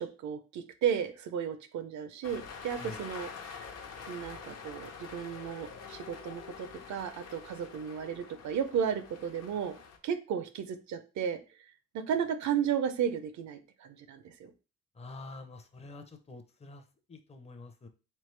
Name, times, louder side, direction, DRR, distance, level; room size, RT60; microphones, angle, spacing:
voice 1, 0.0-3.7 4.1-9.8 10.0-11.4 11.9-14.5, right 8 dB, 70° right, 10 dB, 0.6 m, -34 dB
sound 1, 2.2-10.0, left 6 dB, 55° left, 0.8 m, -46 dB
voice 2, 14.9-17.9, left 3 dB, 20° left, 6 dB, 0.6 m, -47 dB
3.6 x 3.3 x 3.2 m, 0.33 s
cardioid pair, 90°, 30 cm